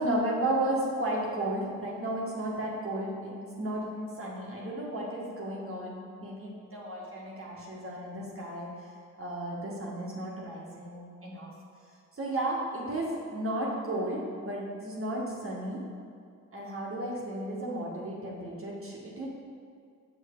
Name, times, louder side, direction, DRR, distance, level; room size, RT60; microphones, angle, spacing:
voice 1, 0.0-8.9 9.2-11.5 12.1-15.8 16.5-19.3, right 1 dB, 40° right, -5 dB, 1.7 m, -33 dB
6.6 x 6.1 x 3.8 m, 2.2 s
supercardioid pair, 55°, 34 cm